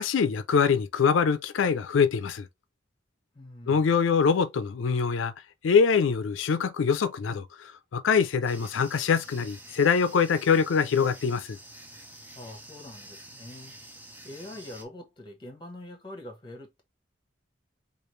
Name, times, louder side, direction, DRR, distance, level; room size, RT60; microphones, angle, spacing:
voice 1, 0.0-2.5 3.7-5.3 5.6-11.6, left 6 dB, 85° left, 0.4 m, -24 dB
voice 2, 3.3-3.9 12.3-13.7 14.2-16.8, left 1 dB, 25° left, 1.0 m, -44 dB
sound 1, 8.5-14.8, right 1 dB, 10° right, 0.6 m, -48 dB
4.9 x 2.4 x 3.1 m
head